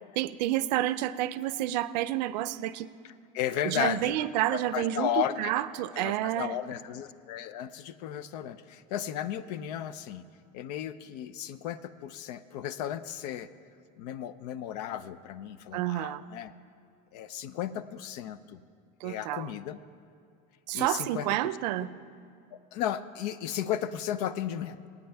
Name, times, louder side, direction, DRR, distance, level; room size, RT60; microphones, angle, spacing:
voice 1, 0.1-2.9 3.6-6.6 15.7-16.2 19.0-19.5 20.7-21.9, right 14 dB, 90° right, 16 dB, 0.5 m, -29 dB
voice 2, 3.3-5.5 5.9-10.2 10.5-13.5 14.0-16.5 17.1-18.6 19.0-19.8 20.7-21.6 22.7-24.9, left 10 dB, 75° left, 14 dB, 0.6 m, -34 dB
24.5 x 9.2 x 3.4 m, 2.3 s
supercardioid pair, 145°, 21 cm